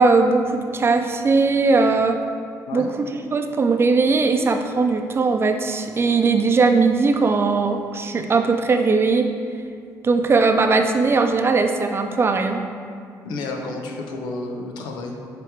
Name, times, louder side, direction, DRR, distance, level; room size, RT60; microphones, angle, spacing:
voice 1, 0.0-2.2 2.7-9.3 10.0-12.6, right 4 dB, 35° right, 5 dB, 0.6 m, -19 dB
voice 2, 13.2-15.2, left 3 dB, 85° left, 2 dB, 0.8 m, -31 dB
8.0 x 3.4 x 4.7 m, 2.2 s
cardioid pair, 80°, 7 cm